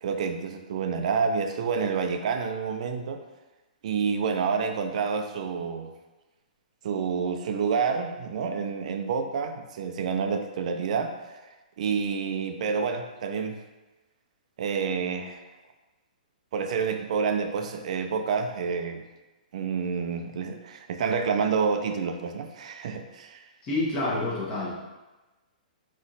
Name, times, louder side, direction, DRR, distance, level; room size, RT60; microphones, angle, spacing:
voice 1, 0.0-3.2 3.8-5.9 6.8-11.4 11.8-13.6 14.6-15.5 16.5-19.0 19.5-23.5, right 5 dB, 50° right, 7 dB, 0.4 m, -28 dB
voice 2, 23.6-24.8, left 2 dB, 20° left, -8 dB, 1.0 m, -28 dB
4.0 x 3.1 x 3.9 m, 1.1 s
hypercardioid pair, 165°, 5 cm